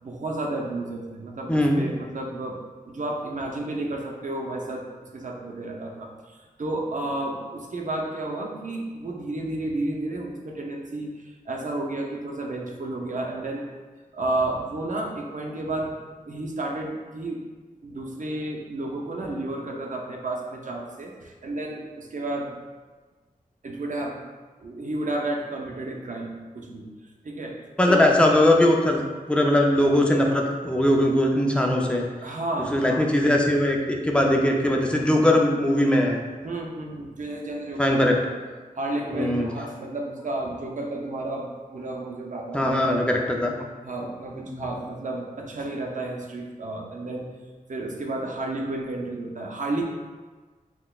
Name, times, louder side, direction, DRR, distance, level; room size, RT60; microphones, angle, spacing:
voice 1, 0.0-13.6 14.1-15.9 16.3-17.4 17.8-22.5 23.6-24.2 24.6-26.9 27.2-27.6 27.9-28.1 32.2-33.1 36.4-38.4 38.8-43.3 43.8-47.3 47.7-49.8, right 2 dB, 55° right, 0 dB, 0.6 m, -32 dB
voice 2, 1.5-1.9 27.8-29.0 29.3-32.0 32.7-36.2 37.8-38.1 39.1-39.5 42.5-43.5 44.3-44.6, left 1 dB, 5° left, 0 dB, 0.5 m, -20 dB
5.9 x 2.1 x 2.3 m, 1.4 s
wide cardioid pair, 75°, 15 cm